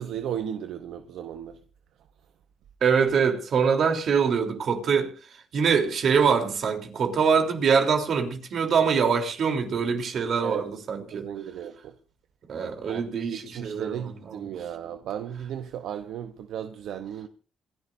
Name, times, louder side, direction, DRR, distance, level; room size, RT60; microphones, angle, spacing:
voice 1, 0.0-1.6 10.4-10.7 11.1-12.0 12.9-17.3, right 9 dB, 80° right, 0.9 m, -35 dB
voice 2, 2.8-5.1 5.5-11.3 12.5-14.5, right 6 dB, 60° right, 3.5 m, -24 dB
27.5 x 11.5 x 2.7 m
cardioid pair, 90°, 0 cm